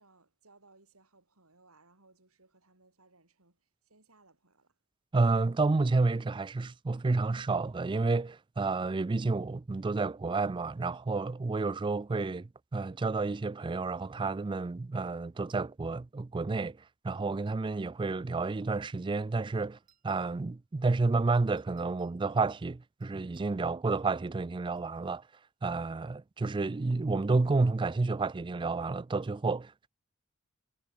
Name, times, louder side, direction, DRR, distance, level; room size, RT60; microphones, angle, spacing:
voice 1, 0.0-4.8, right 3 dB, 80° right, 6.7 m, -63 dB
voice 2, 5.1-16.8 17.0-19.8 20.0-25.2 25.6-29.9, right 3 dB, 20° right, 0.4 m, -30 dB
sound 1, 19.7-20.5 21.3-22.4 23.0-23.5 24.6-25.5, right 9 dB, 40° right, 8.0 m, -73 dB
head